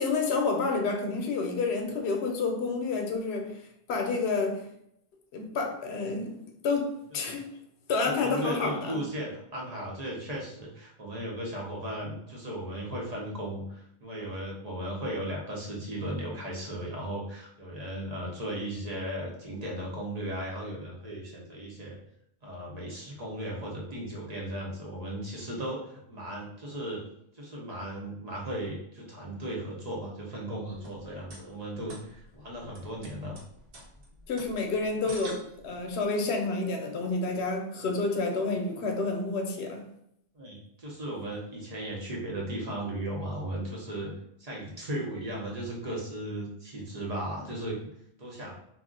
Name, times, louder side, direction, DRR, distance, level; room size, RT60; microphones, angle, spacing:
voice 1, 0.0-3.6 3.9-4.7 5.3-7.5 7.9-9.0 34.3-39.9, left 3 dB, 85° left, 0.9 m, -29 dB
voice 2, 8.2-22.0 22.4-27.0 27.3-33.4 40.3-44.1 44.4-47.8 48.2-48.5, right 1 dB, 45° right, 0.7 m, -36 dB
sound 1, 30.7-36.0, right 1 dB, 65° right, 1.0 m, -49 dB
2.4 x 2.1 x 3.6 m
omnidirectional pair, 1.1 m